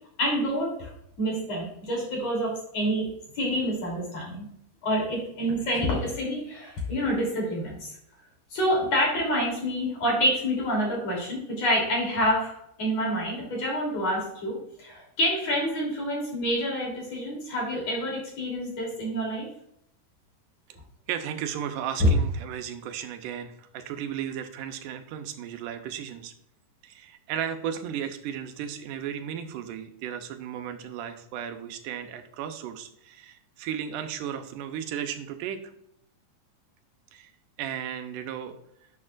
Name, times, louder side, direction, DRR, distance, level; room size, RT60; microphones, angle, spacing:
voice 1, 0.2-0.9 1.2-3.1 3.3-4.5 4.8-7.9 8.5-19.5, equal, 55° left, -2 dB, 4.1 m, -27 dB
voice 2, 21.1-26.3 26.8-35.6 37.1-37.3 37.6-38.6, right 9 dB, 90° right, 7 dB, 2.4 m, -35 dB
11.0 x 7.0 x 2.5 m, 0.73 s
omnidirectional pair, 3.7 m